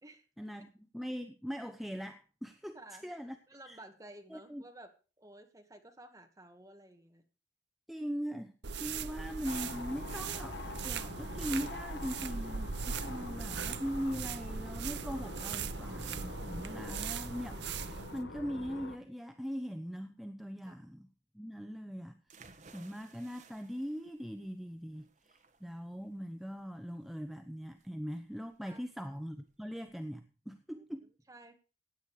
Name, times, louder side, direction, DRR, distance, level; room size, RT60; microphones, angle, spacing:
voice 1, 0.4-2.8 3.0-3.4 3.7-3.8 4.3-4.6 7.9-8.5 8.8-21.1 21.3-31.1, equal, ahead, 7 dB, 0.8 m, -41 dB
voice 2, 2.7-7.2 13.1-13.4 20.6-20.7 28.6-28.8 30.7-30.8 31.3-31.5, right 1 dB, 20° right, 5 dB, 1.9 m, -54 dB
sound 1, 8.6-18.2, right 5 dB, 70° right, 0.7 m, -40 dB
sound 2, 9.4-19.0, left 3 dB, 75° left, 1.2 m, -45 dB
sound 3, 22.3-30.0, right 4 dB, 45° right, 1.4 m, -61 dB
16.0 x 9.4 x 4.9 m, 0.36 s
head